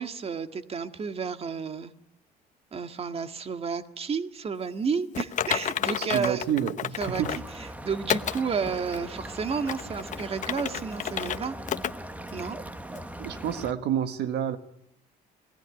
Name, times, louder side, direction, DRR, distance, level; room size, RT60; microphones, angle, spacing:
voice 1, 0.0-1.9 2.7-6.4 7.0-7.2 7.8-11.6 12.3-12.6, right 5 dB, 35° right, 8 dB, 1.9 m, -31 dB
Typing, 5.1-7.5 8.1-8.4 8.9-9.0 9.5-11.4 11.7-11.9 12.3-12.4 12.9-13.0, left 9 dB, 45° left, 1.0 m, -31 dB
voice 2, 6.0-7.4 13.2-14.6, right 9 dB, 80° right, 10 dB, 1.6 m, -29 dB
sound 1, 7.0-13.7, right 1 dB, 10° right, 1.3 m, -40 dB
27.5 x 19.0 x 10.0 m, 0.77 s
cardioid pair, 110°, 17 cm